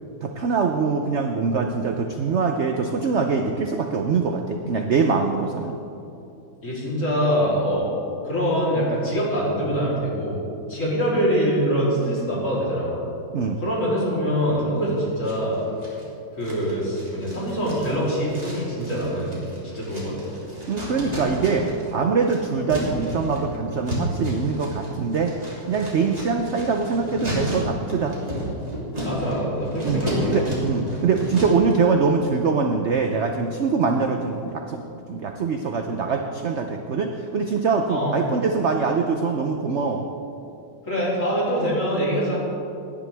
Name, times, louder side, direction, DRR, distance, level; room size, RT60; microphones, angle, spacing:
voice 1, 0.2-5.8 13.3-13.6 20.7-25.4 25.7-28.2 29.8-30.0 30.3-34.8 35.1-40.1, right 5 dB, 80° right, 4 dB, 0.6 m, -23 dB
voice 2, 6.6-7.9 8.2-10.4 10.7-13.0 13.6-15.6 16.4-19.4 19.6-20.1 29.0-30.3 37.9-38.2 40.9-42.4, equal, 40° left, -7 dB, 3.7 m, -24 dB
sound 1, 15.2-16.0 16.4-21.9 22.2-31.7, equal, 20° right, 2.8 m, -31 dB
18.0 x 10.5 x 3.4 m, 2.7 s
omnidirectional pair, 2.0 m